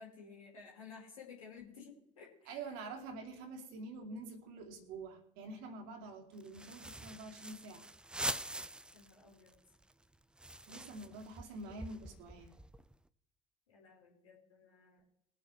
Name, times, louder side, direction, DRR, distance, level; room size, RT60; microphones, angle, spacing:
voice 1, 0.0-2.6 8.9-9.5 11.1-11.2 13.7-15.0, left 5 dB, 75° left, -2 dB, 3.8 m, -54 dB
voice 2, 2.5-7.9 10.7-12.6, right 3 dB, 60° right, 4 dB, 2.4 m, -47 dB
sound 1, 6.4-9.1 9.5-9.6 9.8-12.9, right 1 dB, 5° right, 0.6 m, -44 dB
22.0 x 8.5 x 3.2 m, 0.80 s
figure-of-eight pair, 55°, 17 cm